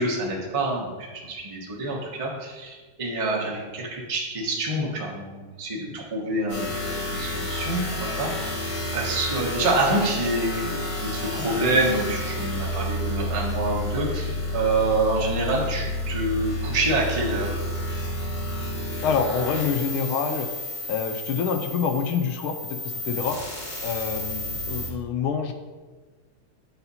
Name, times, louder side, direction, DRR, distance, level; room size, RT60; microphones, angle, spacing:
voice 1, 0.0-17.6, right 2 dB, 20° right, -3 dB, 0.8 m, -27 dB
sound 1, 6.5-24.9, left 1 dB, 65° left, 2.9 m, -31 dB
voice 2, 19.0-20.5 20.9-22.5 22.8-23.4 23.8-25.5, left 6 dB, 80° left, 6 dB, 1.4 m, -26 dB
7.9 x 4.1 x 4.2 m, 1.3 s
omnidirectional pair, 2.4 m